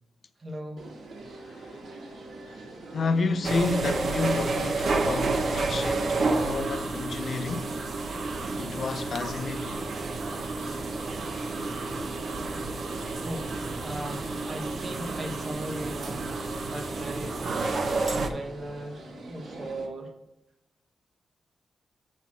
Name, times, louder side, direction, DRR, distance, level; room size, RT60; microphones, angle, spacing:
voice 1, 0.4-0.8 13.2-16.2 16.7-17.6 18.1-20.1, right 1 dB, 35° right, 1.3 m, -38 dB
sound 1, 0.8-19.9, right 2 dB, 80° right, 1.7 m, -44 dB
voice 2, 1.4-1.8 2.5-2.7 2.9-7.7 8.6-9.9, left 4 dB, 50° left, 0.5 m, -30 dB
sound 2, 3.4-18.3, right 3 dB, 55° right, 0.9 m, -30 dB
8.3 x 4.2 x 6.1 m
wide cardioid pair, 130°, 0 cm